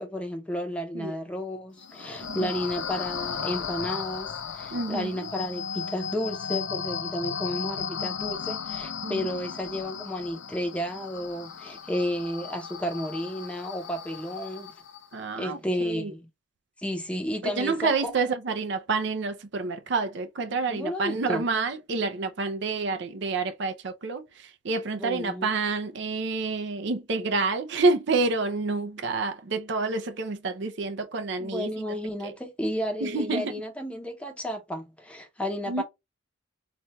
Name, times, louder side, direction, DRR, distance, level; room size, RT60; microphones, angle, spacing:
voice 1, 0.0-14.7 15.4-16.3 16.8-18.1 20.7-21.4 25.0-25.5 31.4-35.8, equal, 5° left, 0.7 m, -32 dB
sound 1, 1.8-15.2, left 6 dB, 65° left, 0.5 m, -35 dB
voice 2, 2.2-2.5 4.7-5.3 9.0-9.5 15.1-16.1 17.4-31.7 32.2-32.3 33.0-33.5 35.7-35.8, right 3 dB, 60° right, 0.5 m, -28 dB
4.1 x 2.3 x 3.0 m
head